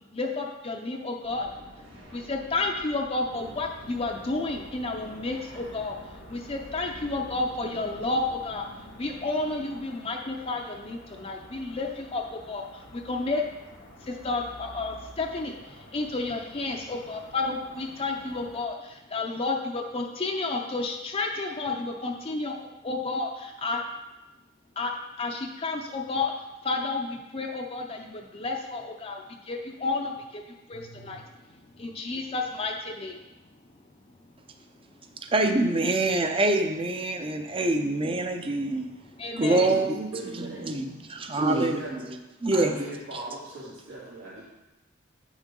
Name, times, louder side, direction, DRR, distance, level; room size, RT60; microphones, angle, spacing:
voice 1, 0.1-1.5 2.1-6.0 6.3-8.7 9.0-13.4 14.0-23.8 24.8-24.9 25.2-26.3 26.6-31.2 31.8-33.2 39.2-39.7, left 3 dB, 30° left, 1 dB, 0.5 m, -31 dB
sound 1, 1.2-10.1, equal, 60° right, 1.9 m, -50 dB
sound 2, 3.3-18.6, equal, 75° left, 1.3 m, -49 dB
voice 2, 35.2-38.9 39.4-41.8 42.4-42.8, right 2 dB, 25° right, 6 dB, 0.6 m, -25 dB
voice 3, 39.6-40.8 41.3-42.1 42.5-44.4, right 2 dB, 85° right, -8 dB, 2.5 m, -39 dB
8.4 x 6.3 x 3.8 m, 1.0 s
head